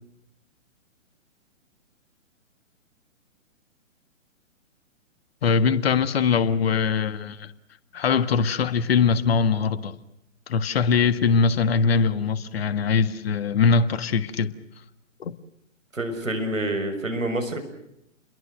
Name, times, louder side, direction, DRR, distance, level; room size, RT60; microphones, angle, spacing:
voice 1, 5.4-7.5 7.9-10.0 10.5-14.5 15.2-15.3, left 5 dB, 50° left, 1.7 m, -22 dB
voice 2, 15.9-17.6, right 1 dB, 80° right, 6.6 m, -27 dB
30.0 x 22.5 x 6.5 m
figure-of-eight pair, 125°, 39 cm